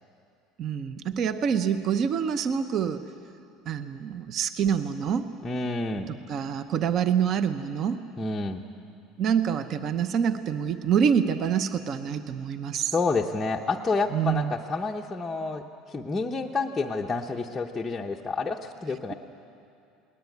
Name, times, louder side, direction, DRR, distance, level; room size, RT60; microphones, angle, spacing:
voice 1, 0.6-3.0 3.7-5.3 6.3-8.0 9.2-12.9 14.1-14.5, right 7 dB, 35° right, 10 dB, 0.7 m, -26 dB
voice 2, 5.4-6.1 8.2-8.6 12.9-19.1, left 3 dB, 10° left, -2 dB, 0.7 m, -29 dB
20.5 x 19.5 x 9.3 m, 2.5 s
cardioid pair, 175°, 0 cm